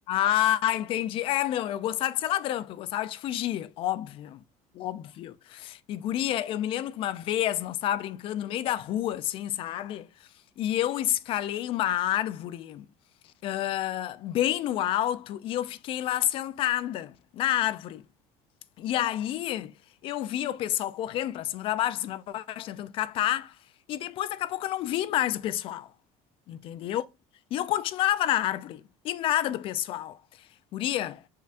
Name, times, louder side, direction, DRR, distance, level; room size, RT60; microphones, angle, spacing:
voice 1, 0.1-4.4 4.8-10.1 10.6-12.9 13.4-18.1 18.8-19.7 20.0-23.6 23.9-25.9 26.5-27.0 27.5-30.2 30.7-31.2, left 12 dB, 40° left, 0.4 m, -29 dB
5.6 x 3.5 x 2.4 m
cardioid pair, 165°, 13 cm